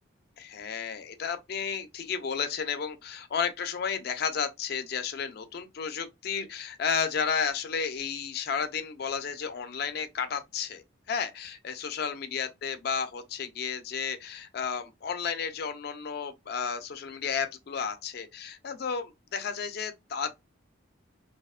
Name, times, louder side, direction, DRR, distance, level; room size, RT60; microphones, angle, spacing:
voice 1, 0.4-20.3, left 6 dB, 50° left, 0.3 m, -32 dB
2.7 x 2.0 x 2.3 m
head